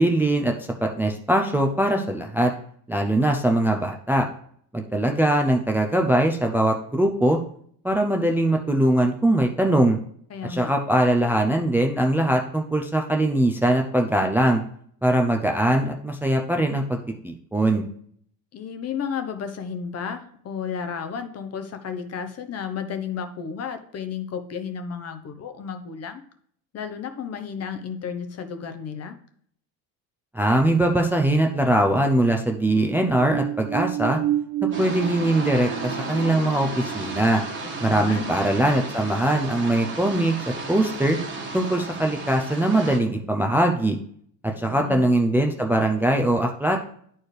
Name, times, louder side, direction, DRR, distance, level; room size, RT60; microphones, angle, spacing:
voice 1, 0.0-2.5 2.9-4.3 4.7-7.4 7.8-10.0 10.5-14.6 15.0-17.0 17.2-17.9 30.3-34.2 34.6-37.4 37.8-40.3 40.7-41.2 41.5-44.0 44.6-46.8, right 1 dB, 5° right, 2 dB, 0.5 m, -21 dB
voice 2, 10.3-10.7 18.5-26.2 26.7-29.2 37.6-38.3 44.5-45.1, left 7 dB, 40° left, 8 dB, 0.8 m, -33 dB
sound 1, 32.6-38.9 39.3-39.4, right 12 dB, 90° right, 0.5 m, -31 dB
sound 2, 34.7-43.0, right 2 dB, 30° right, 1.5 m, -34 dB
9.4 x 4.5 x 3.2 m, 0.62 s
cardioid pair, 125°, 39 cm